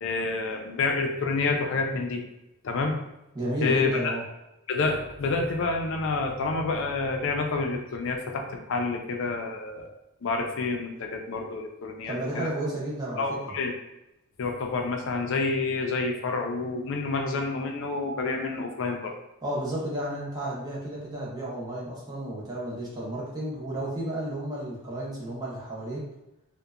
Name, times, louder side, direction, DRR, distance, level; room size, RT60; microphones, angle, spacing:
voice 1, 0.0-2.2 2.6-3.0 3.6-4.1 4.7-9.9 10.2-12.5 13.2-13.7 14.4-19.1, left 3 dB, 60° left, 3 dB, 0.4 m, -28 dB
voice 2, 3.3-4.2 12.1-13.5 19.4-26.1, right 1 dB, 20° right, -6 dB, 0.6 m, -32 dB
2.7 x 2.1 x 2.4 m, 0.92 s
head